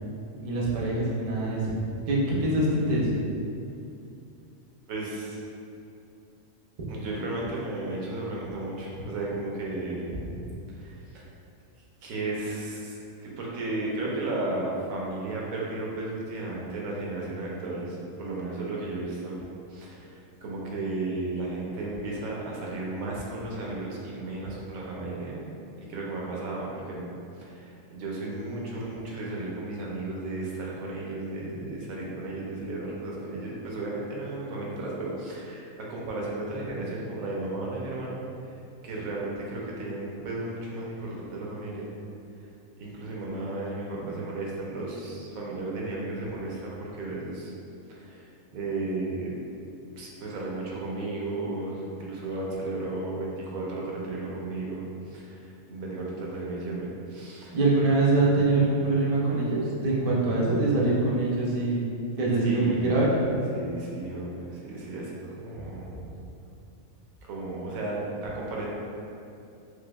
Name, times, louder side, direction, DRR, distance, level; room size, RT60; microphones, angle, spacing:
voice 1, 0.3-1.8 2.1-3.1 57.5-61.9 62.2-63.1 65.6-65.7, right 2 dB, 60° right, -5 dB, 0.3 m, -24 dB
voice 2, 4.9-5.4 6.9-11.2 12.0-19.4 19.7-25.4 25.8-27.0 27.4-38.2 38.5-38.6 38.8-41.9 42.8-47.5 47.9-49.3 50.0-57.6 62.4-63.1 63.5-65.1 65.4-66.0 67.2-68.7, right 2 dB, 85° right, -4 dB, 1.1 m, -34 dB
4.8 x 2.0 x 2.3 m, 2.6 s
omnidirectional pair, 1.4 m